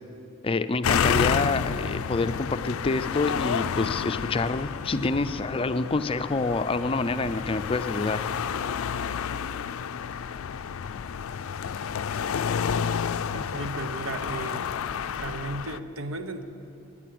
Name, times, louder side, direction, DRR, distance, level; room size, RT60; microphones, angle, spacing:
voice 1, 0.4-8.3, left 3 dB, 25° left, 11 dB, 0.4 m, -27 dB
sound 1, 0.8-15.8, left 7 dB, 90° left, 0.4 m, -30 dB
voice 2, 13.3-14.7 15.2-16.4, right 2 dB, 80° right, 8 dB, 1.0 m, -35 dB
17.0 x 10.0 x 7.7 m, 2.9 s
head